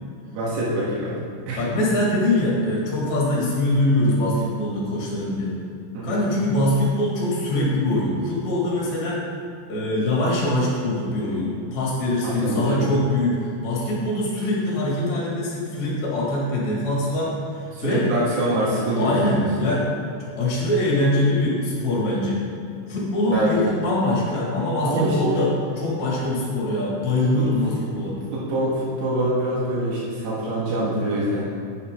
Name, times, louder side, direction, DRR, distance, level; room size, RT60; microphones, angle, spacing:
voice 1, 0.3-1.1 1.5-1.7 5.9-6.2 12.2-12.9 17.7-19.4 23.3-23.5 24.8-25.4 27.4-27.5 28.1-31.4, right 1 dB, 85° right, -8 dB, 4.1 m, -24 dB
voice 2, 1.6-5.5 6.0-9.2 9.7-17.3 17.8-18.0 19.0-19.9 20.4-22.4 22.9-28.2, left 1 dB, 50° left, -5 dB, 3.1 m, -23 dB
11.0 x 8.4 x 3.8 m, 2.6 s
omnidirectional pair, 4.8 m